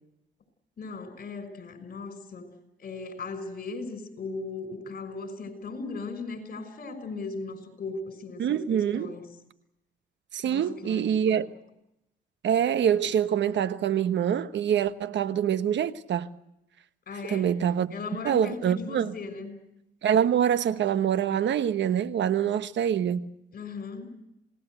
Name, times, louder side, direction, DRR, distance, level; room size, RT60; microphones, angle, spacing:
voice 1, 0.8-2.5 2.8-9.3 10.4-11.4 17.1-17.5 17.9-19.5 23.5-24.1, left 3 dB, 50° left, 6.2 m, -38 dB
voice 2, 8.4-9.1 10.3-11.5 12.4-16.3 17.3-17.9 18.2-19.1 20.0-23.3, right 9 dB, 65° right, 1.2 m, -25 dB
27.5 x 19.5 x 8.0 m
cardioid pair, 90°, 20 cm